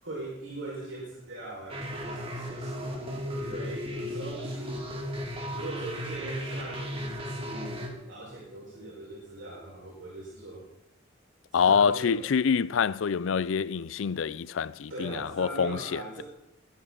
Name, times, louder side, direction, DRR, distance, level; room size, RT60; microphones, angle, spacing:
voice 1, 0.0-4.9 5.5-10.7 11.5-12.3 14.9-16.2, right 2 dB, 85° right, 5.1 m, -41 dB
sound 1, 1.7-7.9, equal, 30° right, 2.7 m, -35 dB
voice 2, 11.5-16.2, left 6 dB, 80° left, 0.4 m, -26 dB
20.0 x 12.5 x 3.9 m
head